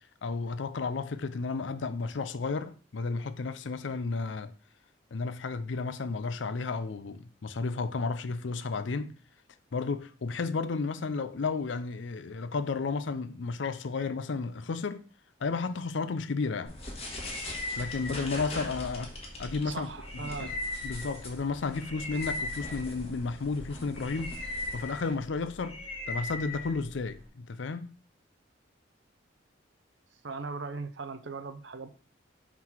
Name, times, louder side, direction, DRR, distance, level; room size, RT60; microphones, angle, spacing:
voice 1, 0.2-4.5 5.1-9.1 9.7-15.0 15.4-16.8 17.8-19.1 19.4-19.9 20.4-20.5 20.8-25.8 26.1-27.9, left 4 dB, 70° left, 0.5 m, -33 dB
sound 1, 16.6-27.3, left 2 dB, 30° left, 1.5 m, -38 dB
voice 2, 19.6-20.6 30.2-31.9, right 4 dB, 70° right, 0.7 m, -39 dB
4.7 x 3.9 x 5.6 m
head